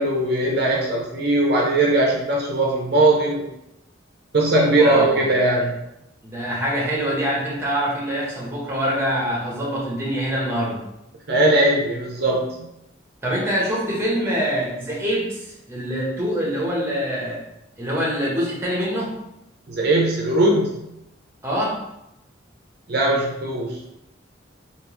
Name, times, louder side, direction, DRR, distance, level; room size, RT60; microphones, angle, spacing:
voice 1, 0.0-3.4 4.3-5.7 11.3-12.7 19.7-20.8 22.9-23.8, right 2 dB, 55° right, -2 dB, 0.6 m, -19 dB
voice 2, 4.6-5.2 5.6-5.7 6.2-10.8 13.2-17.4 17.8-19.1 21.4-21.8, equal, 15° right, -4 dB, 0.9 m, -25 dB
3.4 x 2.8 x 3.0 m, 0.85 s
head